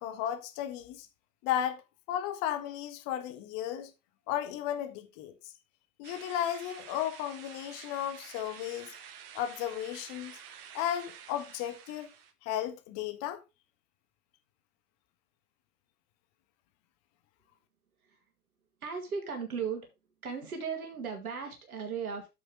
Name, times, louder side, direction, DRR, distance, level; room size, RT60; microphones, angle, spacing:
voice 1, 0.0-1.1 1.4-1.8 2.1-3.9 4.3-5.3 6.0-8.9 9.3-10.3 10.7-12.1 12.4-13.4, left 11 dB, 30° left, 1.4 m, -34 dB
sound 1, 6.0-12.3, right 8 dB, 40° right, 1.4 m, -50 dB
voice 2, 18.8-19.9 20.2-22.3, right 6 dB, 65° right, 2.1 m, -36 dB
8.3 x 6.9 x 3.7 m
figure-of-eight pair, 100°, 47 cm